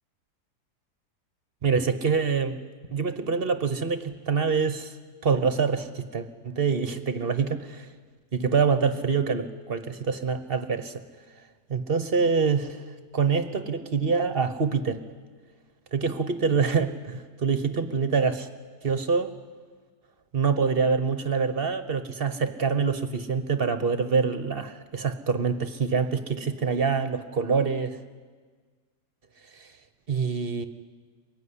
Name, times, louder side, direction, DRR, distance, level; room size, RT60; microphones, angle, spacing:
voice 1, 1.6-2.6 2.9-5.0 5.2-7.9 8.3-10.9 11.7-12.8 13.1-15.0 15.9-18.5 18.8-19.3 20.3-28.0 29.5-29.7 30.1-30.7, right 5 dB, 40° right, 10 dB, 1.1 m, -25 dB
23.5 x 16.0 x 9.8 m, 1.5 s
omnidirectional pair, 1.7 m